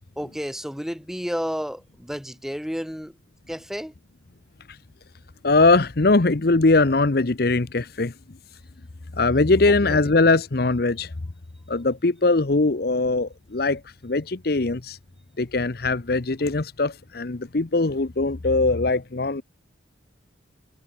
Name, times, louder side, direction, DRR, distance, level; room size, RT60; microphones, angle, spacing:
voice 1, 0.2-3.1 3.5-3.9 9.8-10.1, equal, ahead, 2.6 m, -31 dB
voice 2, 5.4-8.1 9.1-11.1 11.7-15.0 15.4-19.4, left 3 dB, 50° left, 0.8 m, -21 dB
head